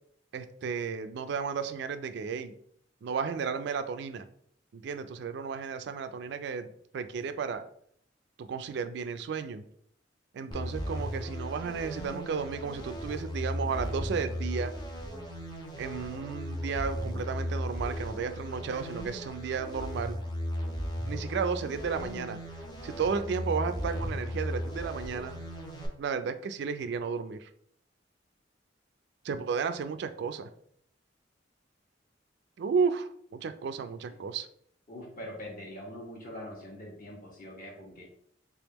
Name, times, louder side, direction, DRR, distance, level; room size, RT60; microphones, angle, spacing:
voice 1, 0.3-2.5 3.0-4.2 4.7-6.7 6.9-7.6 8.4-9.6 10.3-14.7 15.8-20.2 21.0-22.4 22.8-25.4 26.0-27.5 29.2-30.5 32.6-34.5, right 5 dB, 65° right, 10 dB, 0.3 m, -33 dB
sound 1, 10.5-25.9, equal, 25° left, 0.8 m, -36 dB
voice 2, 34.9-38.0, left 1 dB, 50° left, -2 dB, 1.3 m, -43 dB
3.5 x 3.4 x 3.0 m, 0.65 s
head